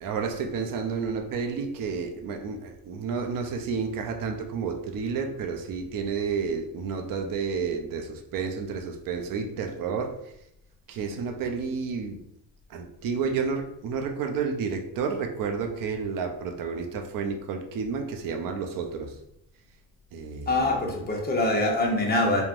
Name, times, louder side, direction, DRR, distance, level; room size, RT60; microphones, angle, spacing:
voice 1, 0.0-10.3 10.9-12.2 12.7-19.2 20.1-20.9, right 5 dB, 50° right, 0.5 m, -31 dB
voice 2, 20.5-22.4, left 2 dB, 20° left, 0.7 m, -24 dB
3.2 x 2.2 x 2.5 m
cardioid pair, 110°, 45 cm